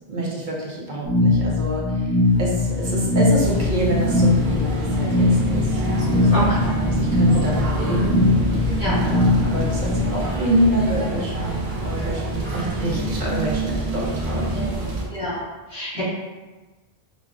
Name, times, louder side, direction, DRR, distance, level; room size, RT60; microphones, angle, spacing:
voice 1, 0.1-8.3 9.0-14.8 15.9-16.0, right 1 dB, 55° right, -4 dB, 0.8 m, -26 dB
sound 1, 1.0-10.1, left 2 dB, 15° right, 0.4 m, -21 dB
sound 2, 2.2-3.9 4.3-6.8 7.5-13.9, equal, 40° left, 1.1 m, -38 dB
sound 3, 3.4-15.0, right 3 dB, 90° right, 1.1 m, -27 dB
voice 2, 6.3-6.7 8.8-9.0 15.1-15.4 15.7-16.0, equal, 60° left, -11 dB, 1.9 m, -25 dB
5.0 x 2.1 x 2.4 m, 1.2 s
omnidirectional pair, 1.0 m